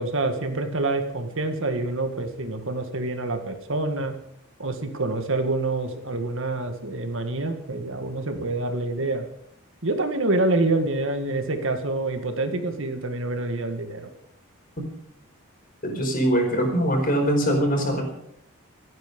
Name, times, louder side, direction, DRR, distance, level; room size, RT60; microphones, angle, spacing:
voice 1, 0.0-4.1 4.6-9.3 9.8-14.1, right 2 dB, 65° right, 6 dB, 2.0 m, -27 dB
voice 2, 15.8-18.1, equal, 40° left, 3 dB, 4.8 m, -22 dB
27.0 x 9.4 x 5.4 m, 0.72 s
head